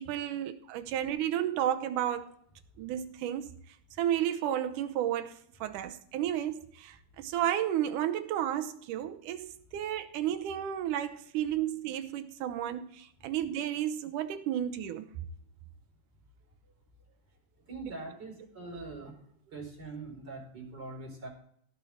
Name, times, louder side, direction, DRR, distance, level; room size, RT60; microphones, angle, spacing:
voice 1, 0.0-2.3 2.8-3.5 4.0-5.3 5.6-15.1, right 11 dB, 90° right, 2.4 m, -32 dB
voice 2, 17.7-19.1 19.5-21.3, right 3 dB, 30° right, 4.9 m, -42 dB
17.0 x 7.1 x 4.3 m
omnidirectional pair, 3.6 m